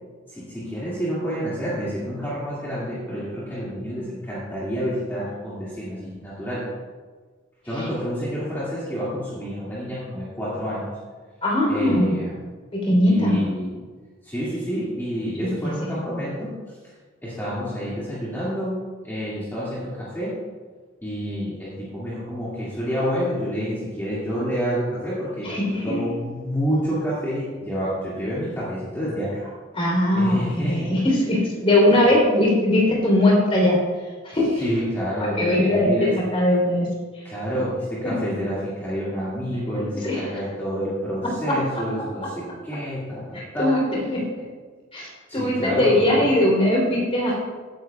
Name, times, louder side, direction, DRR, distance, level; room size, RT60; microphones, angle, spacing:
voice 1, 0.3-6.7 7.6-11.0 11.7-12.3 13.1-13.8 14.2-16.5 17.2-20.4 21.0-25.5 25.8-29.5 30.1-30.9 32.0-32.1 34.6-36.1 37.2-43.8 45.3-46.3, equal, 10° left, -10 dB, 2.1 m, -28 dB
voice 2, 11.4-12.1 12.7-13.4 15.4-15.9 25.4-26.1 29.7-33.8 34.2-34.6 35.2-36.9 37.1-37.2 39.9-40.2 41.2-41.8 43.3-44.4 44.9-47.3, left 1 dB, 30° left, -3 dB, 3.4 m, -21 dB
16.0 x 9.7 x 2.3 m, 1.5 s
head